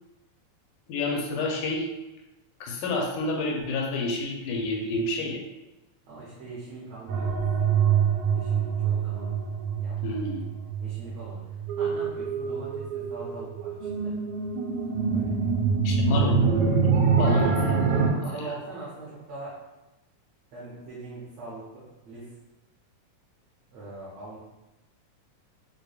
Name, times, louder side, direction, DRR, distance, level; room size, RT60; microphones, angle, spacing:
voice 1, 0.9-1.9 2.6-5.4 10.0-10.5 15.8-16.4 17.2-17.8 18.4-18.5, left 3 dB, 90° left, 0 dB, 2.1 m, -29 dB
voice 2, 6.1-9.5 9.8-10.2 10.8-14.2 15.1-15.5 17.6-17.8 18.1-19.6 20.5-22.3 23.7-24.4, right 2 dB, 65° right, -8 dB, 1.8 m, -42 dB
sound 1, 7.1-18.1, right 6 dB, 85° right, 2.1 m, -25 dB
6.4 x 2.2 x 2.3 m, 1.0 s
omnidirectional pair, 3.5 m